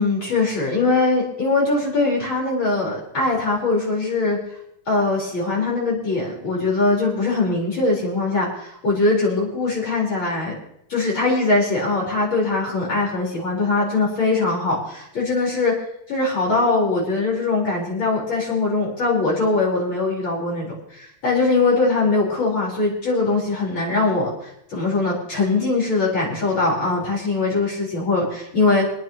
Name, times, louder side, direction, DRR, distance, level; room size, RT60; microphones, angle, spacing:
voice 1, 0.0-4.4 4.9-10.5 10.9-15.7 16.1-24.3 24.7-28.8, left 3 dB, 65° left, -4 dB, 5.0 m, -21 dB
27.0 x 9.5 x 2.9 m, 0.76 s
omnidirectional pair, 2.4 m